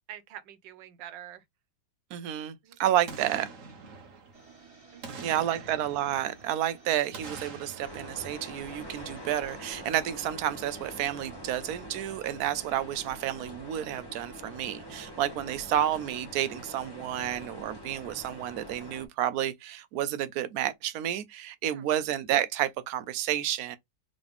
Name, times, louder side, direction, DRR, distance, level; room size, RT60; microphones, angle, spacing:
voice 1, 0.1-1.4 2.6-2.9 4.9-5.7 12.5-12.8 21.7-21.9, right 11 dB, 90° right, 1.4 m, -47 dB
voice 2, 2.1-3.5 5.2-23.8, right 11 dB, 70° right, 1.0 m, -30 dB
Boom, 3.1-4.6 5.0-6.7 7.1-9.4 9.7-9.8, right 4 dB, 50° right, 1.3 m, -45 dB
sound 1, 4.3-10.0, right 4 dB, 20° right, 2.0 m, -54 dB
sound 2, 7.8-19.1, equal, 15° left, 1.0 m, -44 dB
3.8 x 3.1 x 3.5 m
omnidirectional pair, 1.9 m